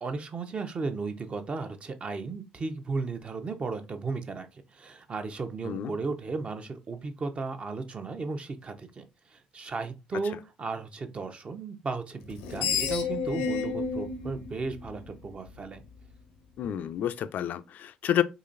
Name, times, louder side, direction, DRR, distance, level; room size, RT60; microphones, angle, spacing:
voice 1, 0.0-15.8, right 4 dB, 40° right, 0.8 m, -35 dB
Screech, 12.2-15.5, left 5 dB, 90° left, 0.7 m, -31 dB
voice 2, 16.6-18.2, left 10 dB, 60° left, 0.4 m, -29 dB
3.9 x 3.0 x 2.5 m
supercardioid pair, 65°, 3 cm